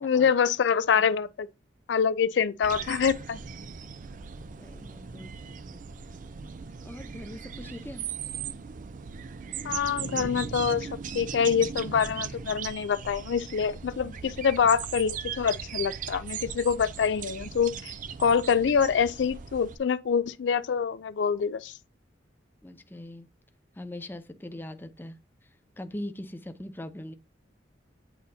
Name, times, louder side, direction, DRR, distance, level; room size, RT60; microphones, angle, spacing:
voice 1, 0.0-1.5 1.9-3.4 9.6-10.9 11.1-17.9 18.2-21.7, left 6 dB, 75° left, 0.4 m, -25 dB
sound 1, 2.6-19.8, right 7 dB, 45° right, 0.4 m, -38 dB
voice 2, 4.5-5.8 6.8-8.0 14.0-14.3 22.6-23.3 23.8-25.2 25.8-27.1, left 1 dB, 10° left, 0.5 m, -41 dB
8.6 x 4.1 x 2.7 m
head